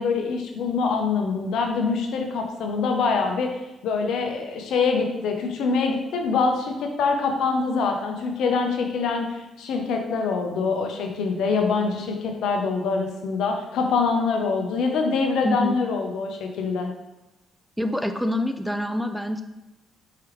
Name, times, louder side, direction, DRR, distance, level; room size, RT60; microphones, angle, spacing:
voice 1, 0.0-3.6 3.8-16.9, left 4 dB, 80° left, 3 dB, 0.6 m, -24 dB
voice 2, 15.4-15.8 17.8-19.4, left 1 dB, ahead, 7 dB, 0.3 m, -26 dB
4.7 x 3.3 x 3.1 m, 1.0 s
cardioid pair, 90°, 0 cm